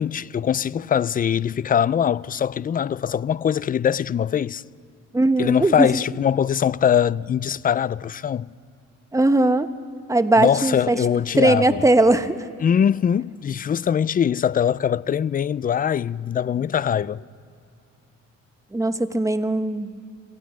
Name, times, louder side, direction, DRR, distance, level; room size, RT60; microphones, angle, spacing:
voice 1, 0.0-4.6 5.4-8.5 10.4-11.8 12.6-17.2, left 8 dB, 30° left, 0.4 m, -22 dB
voice 2, 5.1-5.9 9.1-9.7 10.1-11.0 11.4-12.4 18.7-19.9, right 2 dB, 10° right, 1.0 m, -19 dB
26.5 x 16.0 x 6.2 m
cardioid pair, 90°, 30 cm